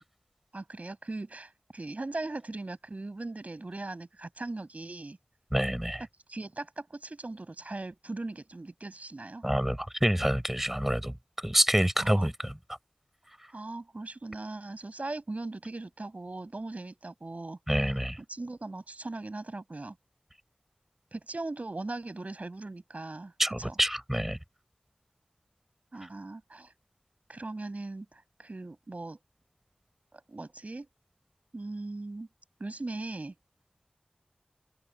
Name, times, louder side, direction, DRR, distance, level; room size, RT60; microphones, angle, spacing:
voice 1, 0.5-5.2 6.3-9.4 12.0-12.3 13.5-18.0 18.3-20.0 21.1-23.3 23.6-23.7 25.9-26.7 27.3-29.2 30.1-30.9 31.5-32.3 32.6-33.3, right 2 dB, 55° right, 7.6 m, -39 dB
voice 2, 5.5-6.0 9.4-11.1 11.4-12.5 17.7-18.2 23.4-24.4, equal, 10° right, 4.5 m, -27 dB
open air
wide cardioid pair, 45°, 3 cm